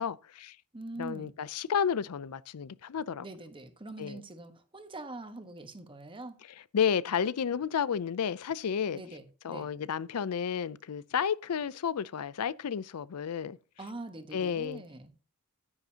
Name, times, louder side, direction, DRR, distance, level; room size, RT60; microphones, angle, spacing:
voice 1, 0.0-0.6 1.0-3.2 4.0-4.2 6.7-9.0 9.4-13.6 14.3-14.8, left 7 dB, 85° left, 0.5 m, -31 dB
voice 2, 0.7-1.3 3.2-6.4 8.9-9.7 13.8-15.1, right 2 dB, 25° right, 1.2 m, -43 dB
10.5 x 9.8 x 2.8 m
head